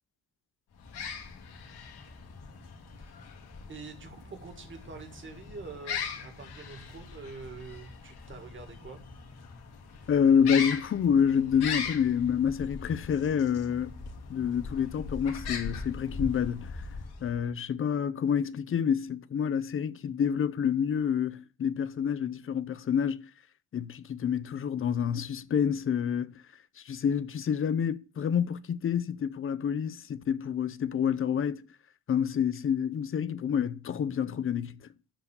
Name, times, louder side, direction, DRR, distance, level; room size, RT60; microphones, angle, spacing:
various exotic birds, 0.7-17.5, left 5 dB, 80° left, 2.8 m, -40 dB
voice 1, 3.0-3.3 3.7-9.0, right 4 dB, 30° right, 2.2 m, -45 dB
voice 2, 10.1-14.0 14.3-16.8 17.2-23.2 23.7-26.3 26.8-31.6 32.1-34.8, left 8 dB, 35° left, 0.5 m, -28 dB
13.5 x 4.7 x 8.3 m
wide cardioid pair, 180°, 38 cm